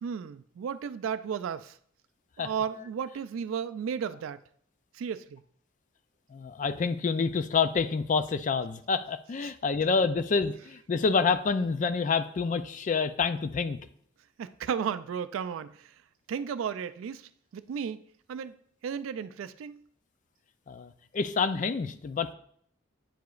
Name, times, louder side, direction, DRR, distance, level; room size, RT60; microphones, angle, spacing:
voice 1, 0.0-1.8 2.4-4.4 4.9-5.4 14.4-15.9 16.3-18.0 18.3-18.6 18.8-19.8, right 7 dB, 85° right, 0.3 m, -34 dB
voice 2, 6.3-13.8 20.7-22.3, left 5 dB, 40° left, 0.3 m, -28 dB
9.0 x 4.8 x 2.4 m
head